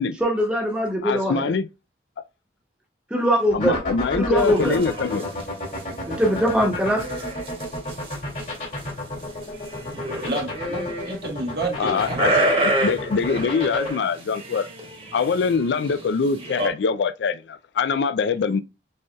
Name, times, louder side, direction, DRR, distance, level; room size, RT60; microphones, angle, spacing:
voice 1, 0.2-1.4 3.1-3.8 4.2-4.8 6.1-7.0, equal, 5° right, 1.0 m, -21 dB
voice 2, 1.0-1.7 3.5-5.3 11.8-14.7 15.1-18.6, left 5 dB, 80° left, 0.4 m, -24 dB
sound 1, 3.5-13.9, left 2 dB, 45° left, 2.1 m, -31 dB
Flock of Sheep in Park (English Garden) in Munich, 4.4-16.7, right 1 dB, 30° right, 1.1 m, -29 dB
voice 3, 10.2-12.2 16.6-16.7, right 2 dB, 60° right, 1.3 m, -29 dB
6.5 x 2.8 x 2.2 m
head